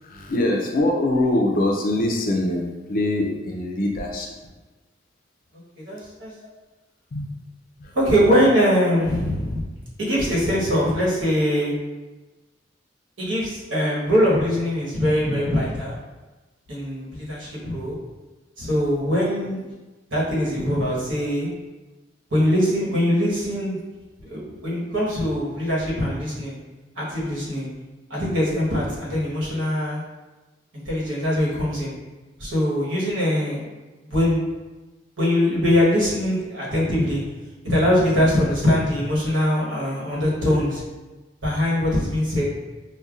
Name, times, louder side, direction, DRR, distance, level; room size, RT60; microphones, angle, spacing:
voice 1, 0.0-4.3 7.1-7.3 7.8-7.9, left 1 dB, 50° left, 0 dB, 0.4 m, -23 dB
voice 2, 5.8-6.3 7.9-9.7 10.0-11.7 13.2-16.0 16.7-18.0 18.6-19.6 20.1-21.5 22.3-23.8 24.2-26.6 27.0-27.7 28.1-30.0 30.9-31.9 32.4-33.7 34.1-34.4 35.2-37.2 37.6-40.8 41.4-42.4, equal, 80° right, -5 dB, 1.2 m, -22 dB
5.3 x 2.2 x 2.4 m, 1.2 s
head